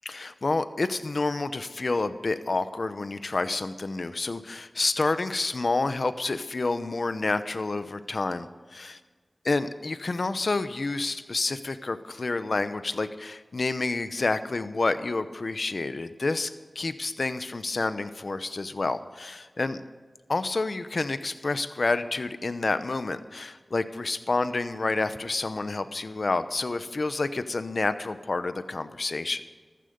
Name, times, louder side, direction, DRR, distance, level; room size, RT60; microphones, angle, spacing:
voice 1, 0.0-9.0 9.4-19.8 20.3-29.4, left 3 dB, 70° left, 12 dB, 0.8 m, -29 dB
14.5 x 14.0 x 5.3 m, 1.4 s
wide cardioid pair, 55°, 0 cm